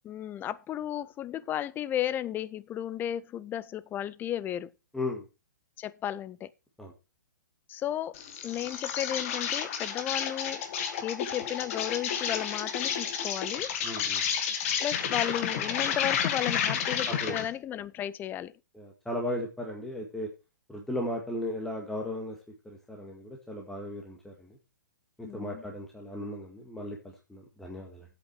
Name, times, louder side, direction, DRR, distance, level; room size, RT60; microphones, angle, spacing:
voice 1, 0.0-4.7 5.8-6.5 7.7-8.2 8.4-10.6 11.0-13.7 14.8-18.5 25.2-25.6, left 11 dB, 20° left, 0.6 m, -34 dB
voice 2, 4.9-5.2 6.8-6.9 13.8-14.2 17.1-17.4 18.7-20.3 20.7-22.4 22.7-24.6 25.2-28.1, left 1 dB, 5° left, 1.9 m, -36 dB
Insect, 8.1-17.5, left 8 dB, 45° left, 2.0 m, -31 dB
9.6 x 8.3 x 4.7 m
figure-of-eight pair, 120°, 10 cm